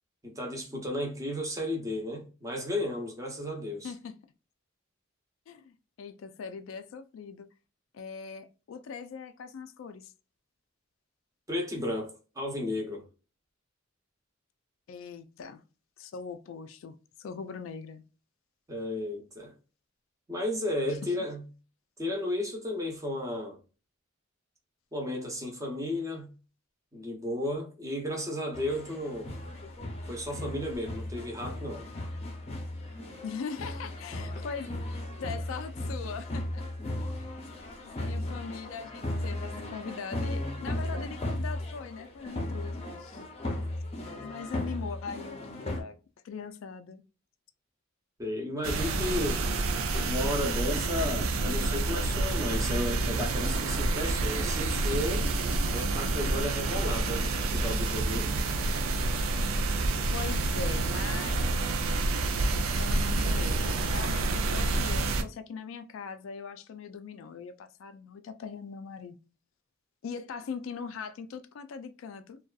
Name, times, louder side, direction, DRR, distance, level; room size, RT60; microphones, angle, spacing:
voice 1, 0.2-3.9 11.5-13.0 18.7-19.5 20.3-21.4 22.0-23.6 24.9-26.3 26.9-29.3 30.1-31.9 48.2-49.5 50.1-55.3 55.7-58.4, left 1 dB, 15° right, 0.7 m, -33 dB
voice 2, 5.5-7.5 7.9-10.1 14.9-15.6 16.0-18.0 21.0-21.1 33.2-34.7 35.2-36.7 37.2-37.3 37.8-43.2 44.2-46.0 46.2-47.0 60.1-61.5 62.8-69.2 70.0-72.4, left 5 dB, 80° left, 0.3 m, -41 dB
sound 1, 28.5-45.8, left 1 dB, 30° left, 0.6 m, -36 dB
sound 2, 48.6-65.2, right 2 dB, 90° right, 0.4 m, -28 dB
sound 3, 49.9-51.5 53.3-56.9, right 1 dB, 55° right, 0.9 m, -43 dB
2.6 x 2.3 x 2.3 m
head